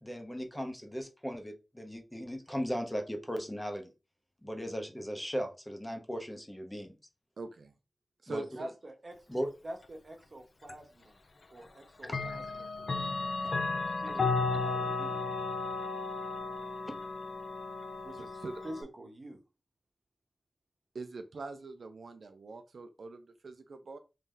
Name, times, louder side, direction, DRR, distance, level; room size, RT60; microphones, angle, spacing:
voice 1, 0.0-3.9 4.4-6.9 8.3-8.4 9.3-9.5 12.1-12.4, equal, 10° left, 4 dB, 0.8 m, -37 dB
voice 2, 7.4-7.7 8.2-8.7 18.1-18.6 20.9-24.0, right 3 dB, 75° right, 8 dB, 0.4 m, -43 dB
voice 3, 8.3-9.2 9.6-11.2 11.5-12.7 14.0-14.3 14.6-15.2 18.0-19.4, right 1 dB, 45° right, 4 dB, 1.0 m, -46 dB
Clock, 10.7-10.8 12.0-18.8, left 3 dB, 60° left, 0.6 m, -34 dB
3.2 x 2.8 x 3.7 m, 0.29 s
wide cardioid pair, 100°, 0 cm